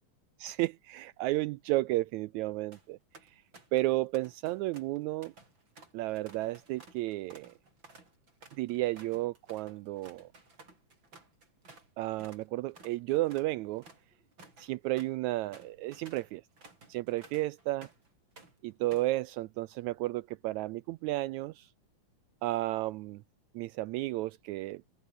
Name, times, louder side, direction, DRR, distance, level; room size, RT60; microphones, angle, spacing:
voice 1, 0.4-3.0 3.7-5.3 5.9-7.5 8.6-10.3 12.0-13.8 14.6-16.4 16.9-17.9 18.6-21.7 22.4-23.2 23.5-24.8, right 18 dB, 80° right, 1.7 m, -32 dB
sound 1, 2.7-2.8 3.1-3.9 4.1-11.9 12.2-12.4 12.7-18.1 18.4-19.2, right 3 dB, 35° right, 6.1 m, -56 dB
open air
omnidirectional pair, 3.7 m